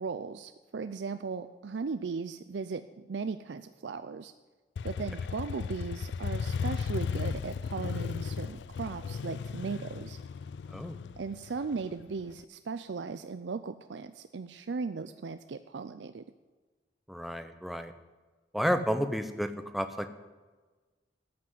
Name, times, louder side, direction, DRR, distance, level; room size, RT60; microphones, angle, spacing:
voice 1, 0.0-4.3 4.8-10.2 11.2-16.2, right 4 dB, 80° right, 10 dB, 0.5 m, -37 dB
Motorcycle, 4.8-12.4, left 6 dB, 80° left, 0.3 m, -35 dB
voice 2, 10.7-11.0 17.1-17.9 18.5-20.1, equal, ahead, 8 dB, 0.7 m, -31 dB
13.5 x 5.9 x 9.5 m, 1.3 s
head